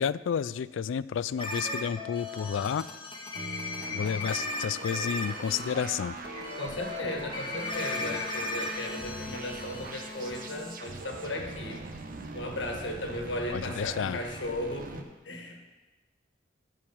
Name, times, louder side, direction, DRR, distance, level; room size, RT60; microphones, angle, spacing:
voice 1, 0.0-2.9 3.9-6.1 13.5-14.2, left 7 dB, 85° left, 17 dB, 0.3 m, -31 dB
sound 1, 1.4-10.8, left 2 dB, 25° left, 1.3 m, -37 dB
sound 2, 3.3-15.0, right 3 dB, 50° right, 0.9 m, -42 dB
voice 2, 6.6-11.8 12.3-15.7, left 1 dB, 70° left, 3 dB, 1.6 m, -36 dB
12.5 x 4.9 x 7.0 m, 1.2 s
head